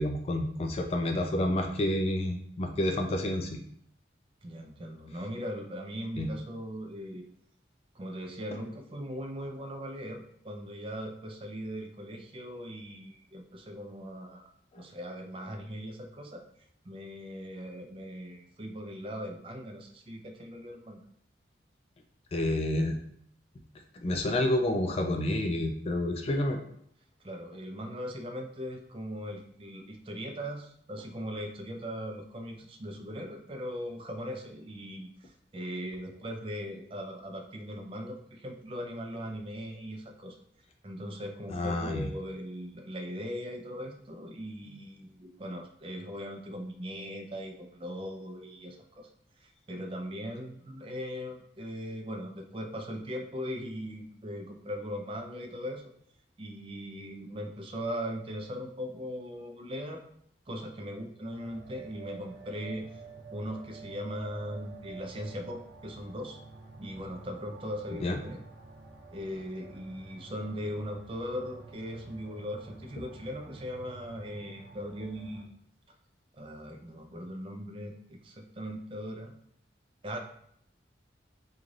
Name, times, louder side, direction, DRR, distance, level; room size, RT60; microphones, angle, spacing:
voice 1, 0.0-3.6 6.2-6.3 22.3-23.0 23.9-26.6 41.5-42.1 68.0-68.2, left 1 dB, 35° left, 4 dB, 0.3 m, -29 dB
voice 2, 4.4-7.2 8.0-14.4 14.8-16.4 16.8-21.0 27.2-40.4 40.8-49.1 49.4-55.9 56.4-60.0 60.5-63.0 63.3-66.4 66.8-68.4 69.1-75.5 76.3-79.3 80.0-80.2, equal, 30° right, 3 dB, 0.4 m, -39 dB
sound 1, 61.3-75.4, right 4 dB, 70° right, 0.8 m, -49 dB
3.1 x 2.4 x 3.8 m, 0.69 s
head